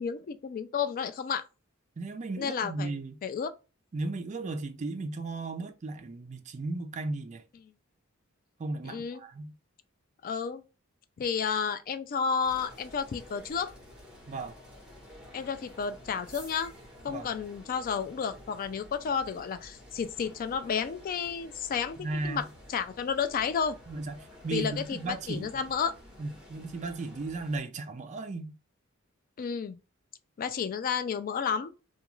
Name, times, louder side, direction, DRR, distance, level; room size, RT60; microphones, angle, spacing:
voice 1, 0.0-1.5 2.4-2.9 3.2-3.5 8.8-9.2 10.2-10.6 11.2-13.7 15.3-16.7 17.0-23.8 24.5-25.9 29.4-29.8 30.4-31.7, left 6 dB, 40° left, 0.3 m, -31 dB
voice 2, 2.0-3.2 3.9-7.4 8.6-9.5 14.3-14.6 17.1-17.3 22.0-22.5 23.9-25.6 26.2-28.5, right 3 dB, 35° right, 0.3 m, -35 dB
sound 1, 12.4-27.6, left 1 dB, 5° right, 1.0 m, -51 dB
2.4 x 2.3 x 2.9 m
head